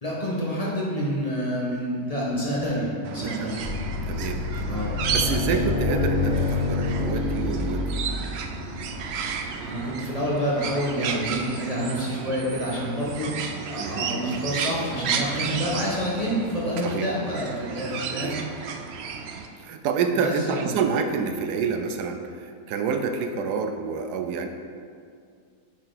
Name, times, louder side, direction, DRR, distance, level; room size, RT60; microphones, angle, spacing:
voice 1, 0.0-3.6 4.7-5.0 9.6-13.4 13.7-18.7 20.1-20.7, equal, 25° left, -6 dB, 1.2 m, -28 dB
sound 1, 3.0-19.5, right 6 dB, 70° right, 0.6 m, -33 dB
voice 2, 3.2-3.7 4.1-4.8 5.1-8.0 13.8-14.1 16.8-17.1 18.1-18.4 19.5-24.5, right 5 dB, 85° right, 6 dB, 1.2 m, -28 dB
sound 2, 3.6-10.1, left 3 dB, 80° left, 2.3 m, -28 dB
8.7 x 4.5 x 4.0 m, 2.2 s
omnidirectional pair, 1.6 m